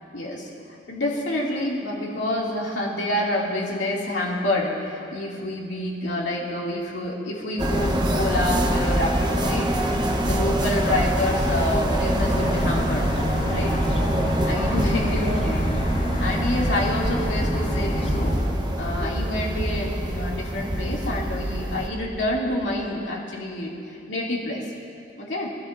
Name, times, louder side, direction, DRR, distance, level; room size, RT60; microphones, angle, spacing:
voice 1, 0.1-0.5 0.9-9.7 10.0-13.1 13.5-13.7 14.4-15.6 16.2-18.4 18.8-24.6 25.2-25.5, left 1 dB, 80° left, -3 dB, 2.6 m, -28 dB
sound 1, 7.6-21.9, equal, 25° right, 1.0 m, -24 dB
sound 2, 12.2-18.4, equal, 30° left, 0.9 m, -29 dB
24.0 x 13.0 x 2.6 m, 2.5 s
head